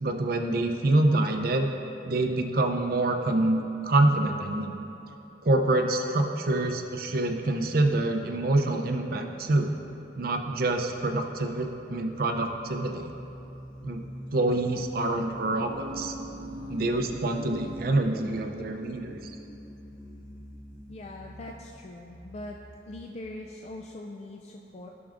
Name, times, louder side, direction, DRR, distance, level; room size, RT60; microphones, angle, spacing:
voice 1, 0.0-1.7 2.0-4.8 5.4-9.7 10.2-13.1 13.8-14.0 14.3-16.1 16.7-19.4, right 2 dB, 55° right, 4 dB, 0.5 m, -26 dB
sound 1, 9.9-23.5, equal, 20° right, 1.8 m, -44 dB
voice 2, 20.9-22.6 22.9-24.9, left 2 dB, 35° left, 1 dB, 0.3 m, -41 dB
12.0 x 6.1 x 2.5 m, 2.9 s
head